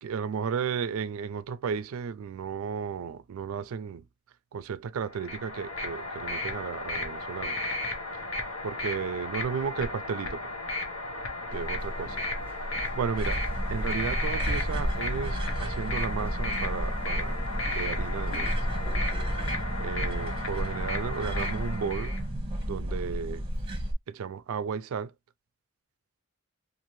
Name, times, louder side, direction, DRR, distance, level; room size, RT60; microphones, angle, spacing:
voice 1, 0.0-4.1 4.5-7.6 8.6-10.5 11.5-12.2 12.9-13.4 13.7-17.4 17.7-18.6 19.8-22.2 22.7-23.4 24.1-25.1, right 6 dB, 75° right, 0.3 m, -34 dB
sound 1, 5.1-22.2, left 2 dB, 70° left, 0.7 m, -34 dB
sound 2, 11.5-19.5, equal, 5° left, 0.9 m, -38 dB
sound 3, 13.2-23.9, equal, 25° right, 0.8 m, -32 dB
2.7 x 2.5 x 3.0 m
head